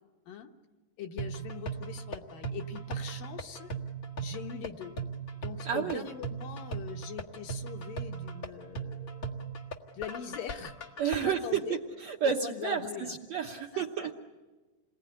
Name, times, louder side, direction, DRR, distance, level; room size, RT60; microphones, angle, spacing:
voice 1, 1.0-3.7 4.2-4.9 5.4-9.5 9.9-10.8 11.1-11.8 12.2-13.2 13.7-14.2, left 8 dB, 65° left, 4 dB, 2.9 m, -42 dB
sound 1, 1.2-11.2, right 4 dB, 45° left, 1.0 m, -38 dB
voice 2, 5.7-6.0 11.0-14.1, right 7 dB, 65° right, 1 dB, 1.8 m, -31 dB
28.5 x 21.0 x 10.0 m, 1.2 s
omnidirectional pair, 4.5 m